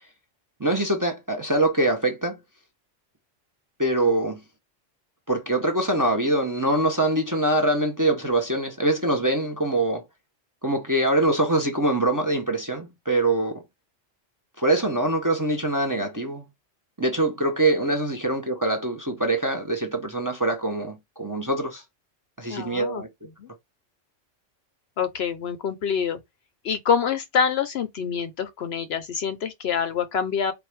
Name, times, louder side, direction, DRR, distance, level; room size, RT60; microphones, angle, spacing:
voice 1, 0.6-2.4 3.8-4.4 5.3-10.0 10.6-13.6 14.6-16.4 17.0-21.8 22.4-23.1, right 1 dB, 20° right, 0.6 m, -24 dB
voice 2, 22.5-23.0 23.4-23.5 25.0-26.2 26.6-30.5, left 7 dB, 65° left, 0.8 m, -26 dB
4.4 x 2.5 x 3.2 m
omnidirectional pair, 1.3 m